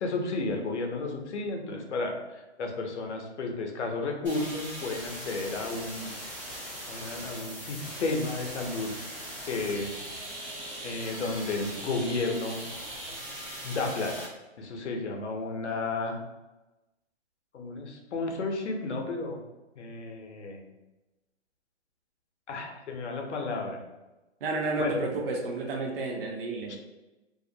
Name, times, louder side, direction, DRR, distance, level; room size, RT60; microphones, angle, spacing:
voice 1, 0.0-6.1 6.9-9.2 9.5-10.0 10.8-12.6 13.6-14.3 14.6-16.2 17.5-19.4 19.8-20.6 22.5-23.8 24.8-25.0 26.7-26.8, left 3 dB, 80° left, 3 dB, 0.6 m, -32 dB
sound 1, 4.2-14.2, equal, 5° right, 0.4 m, -40 dB
voice 2, 24.4-26.8, right 3 dB, 55° right, 1 dB, 0.6 m, -31 dB
2.4 x 2.0 x 2.6 m, 1.0 s
hypercardioid pair, 145°, 34 cm